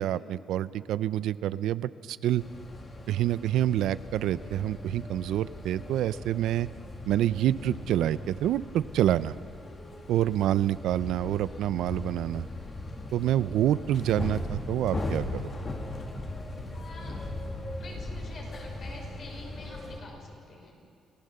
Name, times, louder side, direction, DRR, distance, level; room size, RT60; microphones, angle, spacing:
voice 1, 0.0-2.4 3.1-6.7 7.1-9.4 10.1-12.4 13.1-15.5, right 12 dB, 90° right, 16 dB, 0.4 m, -27 dB
sound 1, 2.4-20.0, left 1 dB, 30° left, 2.4 m, -38 dB
voice 2, 16.7-17.2 17.8-20.7, left 2 dB, 50° left, 0 dB, 5.5 m, -47 dB
28.5 x 15.0 x 6.7 m, 2.5 s
cardioid pair, 120°, 0 cm